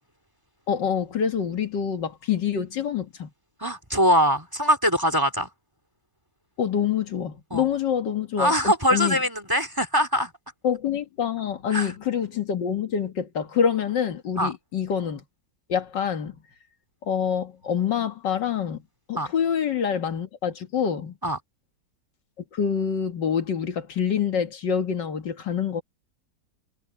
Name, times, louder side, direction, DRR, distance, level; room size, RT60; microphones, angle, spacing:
voice 1, 0.7-3.3 6.6-9.2 10.6-15.2 15.7-16.4 17.0-18.8 19.1-21.1 22.5-25.8, left 8 dB, 75° left, 2.2 m, -26 dB
voice 2, 3.6-5.5 7.5-7.7 8.4-10.3 11.7-11.9 14.4-14.5 19.2-19.3 21.2-21.4, equal, 10° right, 3.6 m, -22 dB
omnidirectional pair, 1.9 m